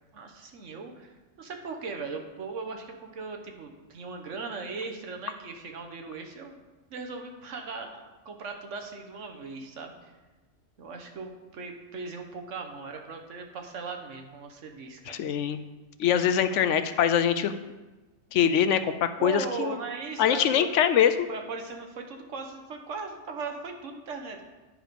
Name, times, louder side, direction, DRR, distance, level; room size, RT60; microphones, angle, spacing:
voice 1, 0.1-6.6 6.9-10.1 10.8-15.2 16.3-16.4 19.2-20.7 21.0-24.5, right 4 dB, 80° right, 3 dB, 1.4 m, -38 dB
voice 2, 15.1-15.6 16.0-17.5 18.3-19.8 20.2-21.3, left 9 dB, 80° left, 10 dB, 0.9 m, -23 dB
10.5 x 4.9 x 5.2 m, 1.2 s
omnidirectional pair, 1.3 m